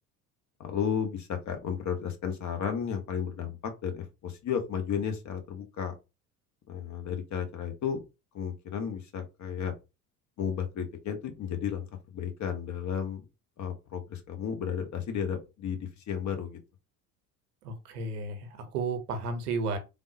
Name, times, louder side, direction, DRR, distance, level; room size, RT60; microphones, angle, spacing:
voice 1, 0.6-5.9 6.7-8.0 8.3-9.7 10.4-13.2 13.6-16.6, left 7 dB, 40° left, 0.8 m, -33 dB
voice 2, 17.6-19.8, right 3 dB, 80° right, 0.8 m, -33 dB
3.4 x 2.1 x 2.6 m
hypercardioid pair, 70°, 45 cm